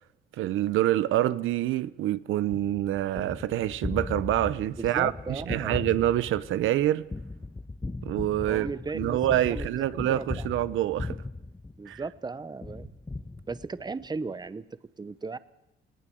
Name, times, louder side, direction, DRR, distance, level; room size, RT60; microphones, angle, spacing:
voice 1, 0.4-7.1 8.0-8.7 8.9-11.2 11.9-12.0, right 13 dB, 85° right, 0.8 m, -26 dB
Gunshot gunfire, 2.5-12.2 12.6-14.0, left 3 dB, 15° left, 1.2 m, -38 dB
voice 2, 4.9-5.8 8.4-10.6 11.8-12.9 13.5-14.6 15.0-15.4, right 4 dB, 20° right, 1.0 m, -36 dB
19.5 x 19.0 x 7.7 m
cardioid pair, 90°, 20 cm